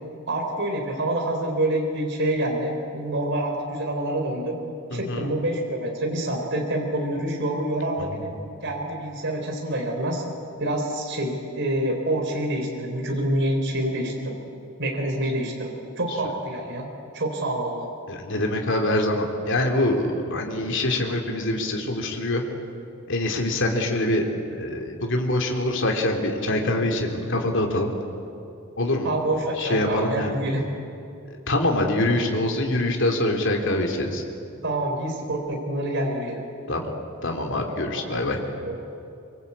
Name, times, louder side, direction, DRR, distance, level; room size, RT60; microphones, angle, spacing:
voice 1, 0.3-4.5 4.9-8.3 8.6-10.2 10.6-14.4 14.8-16.9 17.1-17.9 29.0-30.6 34.6-36.4 37.9-38.8, right 1 dB, 60° right, 1 dB, 3.9 m, -27 dB
voice 2, 4.9-5.3 8.0-8.2 18.1-22.4 23.1-24.2 24.6-27.9 28.8-29.1 29.6-30.4 31.5-34.2 36.7-36.9 37.2-38.4, left 1 dB, 60° left, 2 dB, 3.2 m, -24 dB
25.0 x 24.0 x 8.6 m, 2.7 s
head